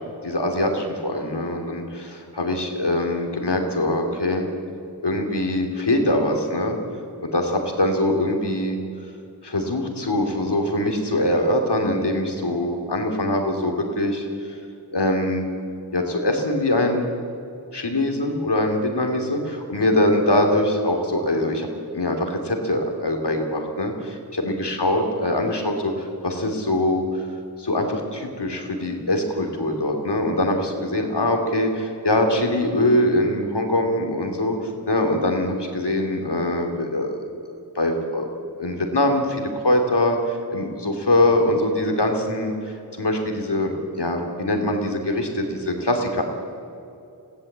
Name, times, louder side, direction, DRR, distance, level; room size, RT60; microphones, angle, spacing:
voice 1, 0.2-4.5 5.0-6.8 7.2-8.8 9.4-14.6 14.9-15.5 15.9-17.1 17.7-21.7 21.9-23.9 24.3-27.3 27.6-37.2 37.5-38.3 38.6-46.2, left 1 dB, 75° left, 3 dB, 3.1 m, -23 dB
22.0 x 15.5 x 8.2 m, 2.6 s
wide cardioid pair, 40°, 41 cm